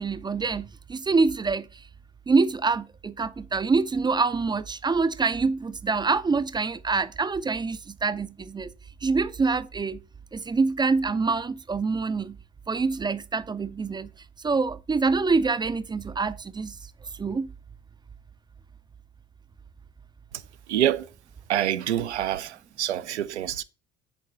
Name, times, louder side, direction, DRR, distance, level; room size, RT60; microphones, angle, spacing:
voice 1, 0.0-1.7 2.3-8.7 9.0-10.0 10.3-12.4 12.7-14.1 14.4-16.8 17.2-17.5, right 4 dB, 15° right, 0.4 m, -25 dB
voice 2, 20.3-21.1 21.5-23.6, right 11 dB, 75° right, 0.6 m, -27 dB
10.0 x 4.6 x 4.1 m
figure-of-eight pair, 60°, 34 cm